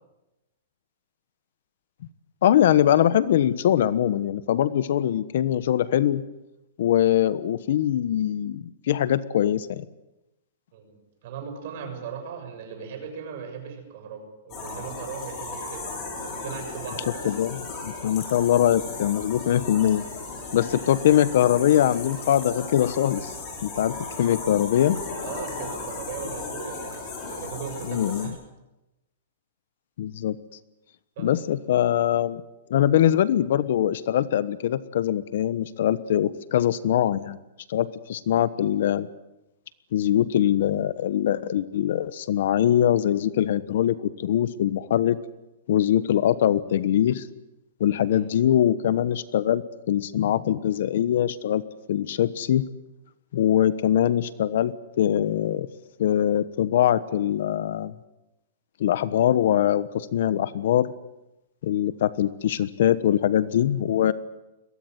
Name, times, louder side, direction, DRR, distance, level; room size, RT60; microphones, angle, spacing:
voice 1, 2.4-6.2 6.8-9.8 17.2-20.0 20.5-23.3 23.6-25.0 27.9-28.3 30.0-30.4 31.2-32.4 32.7-37.4 37.7-39.1 39.9-45.2 45.7-47.3 47.8-51.6 51.9-52.6 53.3-55.7 56.0-57.9 58.8-60.9 61.6-64.1, left 11 dB, 55° left, 16 dB, 1.1 m, -22 dB
voice 2, 10.7-17.4 20.6-20.8 25.2-28.4 31.2-31.6 48.1-48.3, right 6 dB, 45° right, 5 dB, 6.9 m, -38 dB
sound 1, 14.5-28.3, left 3 dB, 25° left, 6.9 m, -36 dB
22.5 x 18.0 x 9.5 m, 0.96 s
hypercardioid pair, 165°, 0 cm